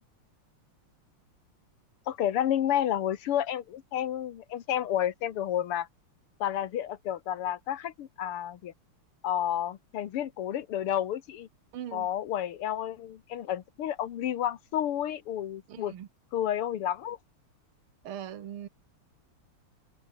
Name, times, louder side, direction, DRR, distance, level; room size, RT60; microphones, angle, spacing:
voice 1, 2.1-5.9 6.4-8.7 9.2-11.5 11.9-15.9 16.3-17.2, left 11 dB, 85° left, 2.2 m, -30 dB
voice 2, 11.7-12.1 15.7-16.1 18.0-18.7, right 10 dB, 75° right, 2.2 m, -40 dB
omnidirectional pair, 2.4 m